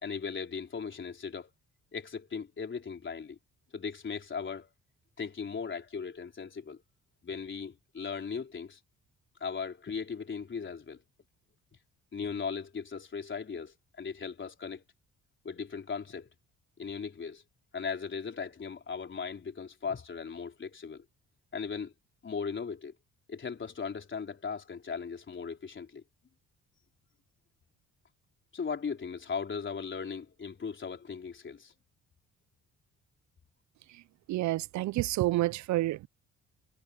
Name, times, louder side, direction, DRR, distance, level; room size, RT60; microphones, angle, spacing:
voice 1, 0.0-1.5 1.9-3.4 3.7-4.7 5.2-6.8 7.2-8.8 9.4-11.0 12.1-14.8 15.4-16.3 16.8-17.4 17.7-21.0 21.5-21.9 22.2-22.9 23.3-26.0 28.5-31.7, left 5 dB, 40° left, 4.2 m, -38 dB
voice 2, 34.3-36.1, right 17 dB, 70° right, 0.4 m, -29 dB
cardioid pair, 90°, 30 cm